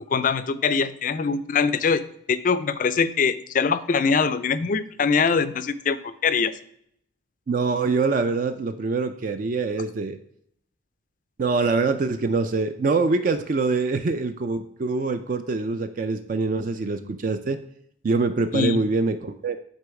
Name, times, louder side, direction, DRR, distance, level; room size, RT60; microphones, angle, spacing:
voice 1, 0.1-6.5 18.5-18.8, left 5 dB, 40° left, 14 dB, 0.3 m, -23 dB
voice 2, 7.5-10.2 11.4-17.6 18.0-19.6, right 3 dB, 40° right, 9 dB, 0.3 m, -24 dB
8.2 x 3.8 x 4.7 m, 0.72 s
head